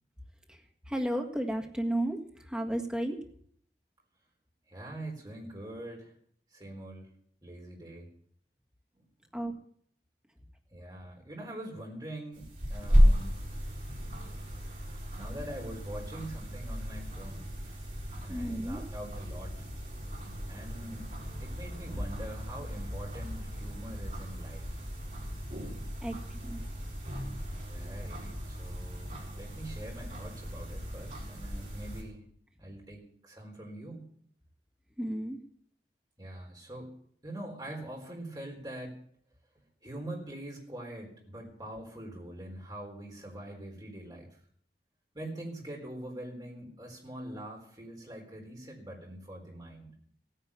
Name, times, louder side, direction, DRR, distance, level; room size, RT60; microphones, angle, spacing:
voice 1, 0.5-3.2 9.3-9.5 18.2-18.8 26.0-26.6 35.0-35.4, right 1 dB, 5° right, 2 dB, 1.7 m, -33 dB
voice 2, 4.7-6.1 6.5-7.1 7.4-8.1 8.9-9.0 10.7-13.4 15.2-17.5 18.2-19.6 20.5-21.1 21.4-24.7 27.6-32.2 32.6-34.0 36.2-36.9 37.2-39.0 39.8-44.4 45.1-49.9, right 1 dB, 25° right, -1 dB, 4.1 m, -43 dB
sound 1, 12.3-32.0, equal, 45° right, 4.7 m, -33 dB
16.0 x 10.0 x 7.1 m, 0.63 s
head